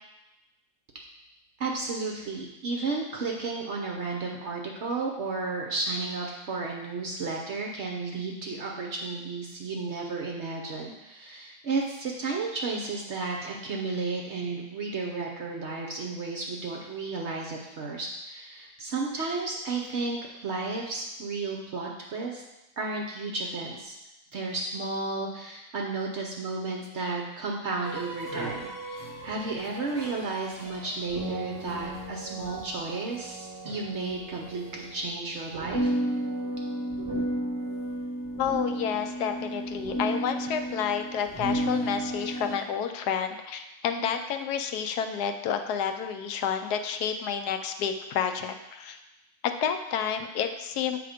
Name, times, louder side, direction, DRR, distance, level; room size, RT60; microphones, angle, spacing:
voice 1, 1.6-22.4 22.8-24.0 24.3-35.9, right 3 dB, 60° right, 0 dB, 0.8 m, -33 dB
sound 1, 27.8-35.0 35.5-42.5, right 1 dB, 15° right, 0.9 m, -34 dB
voice 2, 38.4-49.0 49.6-51.0, left 7 dB, 80° left, 7 dB, 1.1 m, -30 dB
7.6 x 3.4 x 5.0 m, 0.97 s
omnidirectional pair, 1.7 m